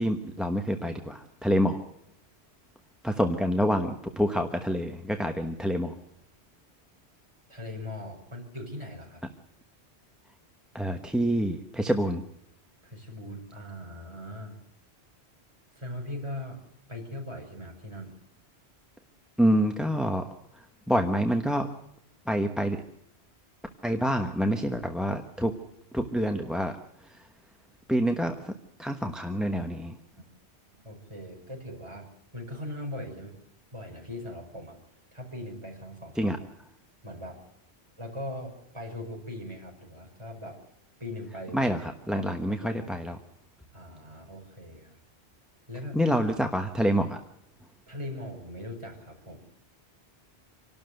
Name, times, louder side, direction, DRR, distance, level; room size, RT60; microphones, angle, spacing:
voice 1, 0.0-1.8 3.0-6.0 10.7-12.2 19.4-20.3 20.9-21.7 22.3-22.8 23.8-25.5 25.9-26.7 27.9-28.5 28.8-29.9 36.2-36.4 41.5-43.2 45.9-47.2, equal, ahead, 5 dB, 1.1 m, -27 dB
voice 2, 7.5-9.2 12.8-14.6 15.7-16.6 16.9-18.1 30.8-32.1 32.3-33.4 33.7-34.8 35.1-36.4 37.0-37.5 38.0-40.6 41.0-41.6 42.1-42.9 43.7-45.0 45.7-46.2 47.9-49.4, left 1 dB, 25° right, -1 dB, 5.4 m, -40 dB
26.5 x 12.5 x 7.8 m, 0.76 s
omnidirectional pair, 1.1 m